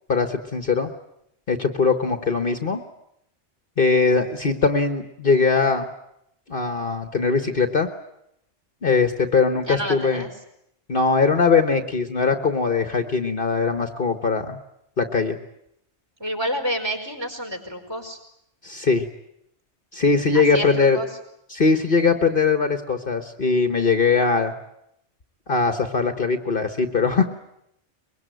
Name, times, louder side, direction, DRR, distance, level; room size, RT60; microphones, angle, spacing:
voice 1, 0.1-0.9 1.5-2.8 3.8-5.9 6.5-7.9 8.8-10.2 10.9-14.6 15.0-15.4 18.6-19.0 19.9-21.0 21.5-24.5 25.5-27.3, left 4 dB, 50° left, 7 dB, 1.5 m, -21 dB
voice 2, 9.7-10.3 16.2-18.2 20.3-21.1, equal, 20° right, 3 dB, 5.1 m, -29 dB
24.0 x 22.5 x 9.2 m, 0.78 s
omnidirectional pair, 1.2 m